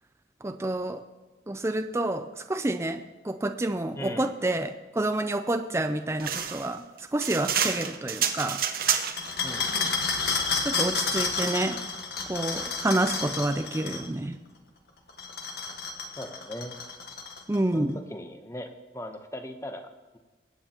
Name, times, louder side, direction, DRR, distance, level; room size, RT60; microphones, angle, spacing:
voice 1, 0.4-1.0 1.5-6.8 7.1-8.6 10.6-11.8 12.3-14.4 17.5-18.0, right 1 dB, 15° right, 8 dB, 0.4 m, -28 dB
voice 2, 4.0-4.3 9.4-9.9 16.2-16.8 17.7-20.2, left 1 dB, 15° left, 6 dB, 0.8 m, -39 dB
sound 1, 6.2-9.3, right 8 dB, 55° right, 0.9 m, -28 dB
sound 2, 9.2-14.1 15.1-17.6, left 4 dB, 60° left, 1.5 m, -30 dB
22.5 x 9.0 x 2.9 m, 1.2 s
head